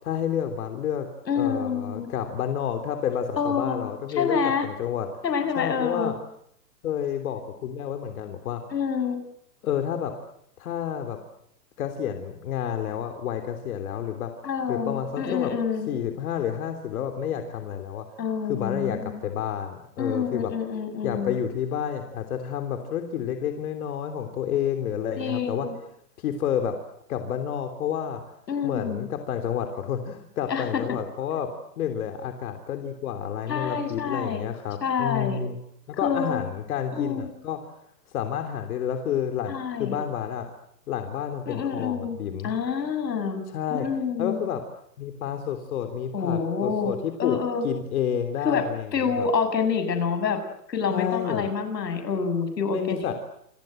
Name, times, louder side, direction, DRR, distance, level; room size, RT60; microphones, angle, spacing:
voice 1, 0.0-1.1 1.4-5.1 5.6-6.2 6.8-8.6 9.6-10.1 10.6-11.2 11.8-14.3 14.7-15.5 15.9-18.1 18.4-20.5 21.0-25.7 26.2-26.8 27.1-28.2 28.6-31.5 31.8-35.6 36.0-37.7 38.1-40.5 40.9-42.5 43.5-43.9 44.2-44.6 45.0-47.4 47.6-48.9 49.2-49.3 50.9-51.5 52.7-53.1, left 9 dB, 60° left, 6 dB, 3.6 m, -29 dB
voice 2, 1.3-2.1 3.4-4.7 5.2-6.1 8.7-9.2 14.4-15.9 18.2-19.2 20.0-21.3 25.2-25.7 28.5-29.1 30.5-30.8 33.5-34.4 34.8-35.4 36.0-36.4 36.9-37.3 39.5-40.0 41.5-42.2 42.4-43.4 43.7-44.4 46.1-46.9 47.2-47.6 48.4-48.7 48.9-50.4 50.7-53.1, left 6 dB, 85° left, 9 dB, 7.8 m, -27 dB
28.5 x 25.5 x 7.9 m, 0.72 s
hypercardioid pair, 145°, 49 cm